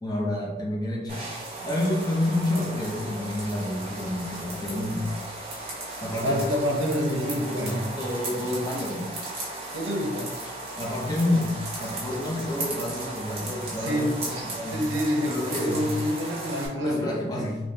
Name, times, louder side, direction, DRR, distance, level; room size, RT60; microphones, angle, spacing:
voice 1, 0.0-5.1 6.0-9.1 10.8-11.5 11.8-14.8 15.2-15.9 16.7-17.6, left 1 dB, 20° left, -3 dB, 0.7 m, -29 dB
sound 1, 1.1-16.7, right 2 dB, 35° right, 0.9 m, -36 dB
voice 2, 6.2-7.8 9.7-10.3 12.1-12.3 13.8-14.1 14.7-17.5, equal, 90° right, 0 dB, 0.7 m, -28 dB
3.5 x 3.0 x 2.7 m, 1.1 s
head